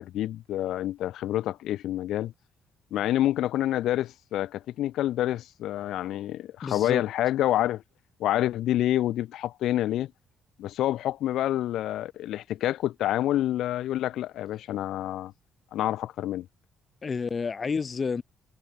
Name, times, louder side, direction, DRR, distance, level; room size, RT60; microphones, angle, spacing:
voice 1, 0.0-2.3 2.9-7.8 8.2-10.1 10.6-15.3 15.7-16.5, left 13 dB, 80° left, 7.3 m, -27 dB
voice 2, 6.6-7.0 17.0-18.2, left 5 dB, 40° left, 5.3 m, -29 dB
cardioid pair, 90°, 0 cm